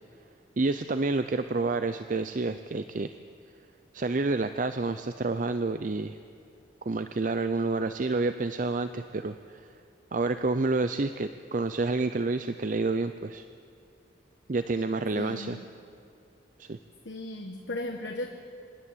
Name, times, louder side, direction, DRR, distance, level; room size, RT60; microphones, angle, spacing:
voice 1, 0.6-3.2 3.9-6.2 6.8-9.7 10.1-13.4 14.5-15.6 16.6-16.8, right 3 dB, 45° right, 10 dB, 0.5 m, -29 dB
voice 2, 15.1-15.6 17.0-18.3, left 1 dB, 70° left, 3 dB, 1.3 m, -36 dB
26.0 x 11.5 x 9.0 m, 2.6 s
head